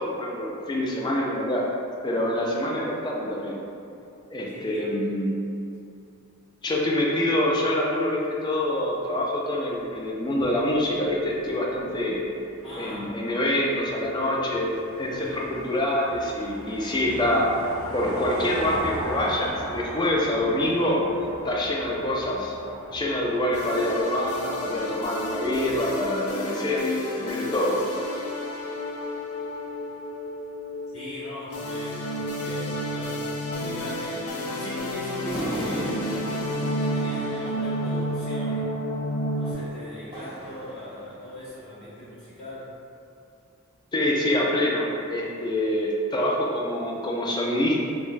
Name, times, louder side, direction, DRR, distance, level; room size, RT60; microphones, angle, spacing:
voice 1, 0.0-1.7 2.0-3.6 4.3-5.3 6.6-12.2 12.8-17.5 17.9-21.0 21.4-22.5 22.9-27.8 43.9-47.8, left 1 dB, 20° left, -3 dB, 0.3 m, -26 dB
voice 2, 4.5-5.1 12.6-13.2 30.9-34.3 34.5-36.2 36.8-38.6 39.4-42.7, equal, 60° left, -15 dB, 0.8 m, -40 dB
sound 1, 9.7-26.2, equal, 70° right, 0.6 m, -40 dB
sound 2, 23.5-39.5, equal, 90° left, 0.4 m, -31 dB
sound 3, 35.3-38.0 39.4-41.5, right 1 dB, 30° right, 0.6 m, -36 dB
2.4 x 2.2 x 3.1 m, 2.5 s
head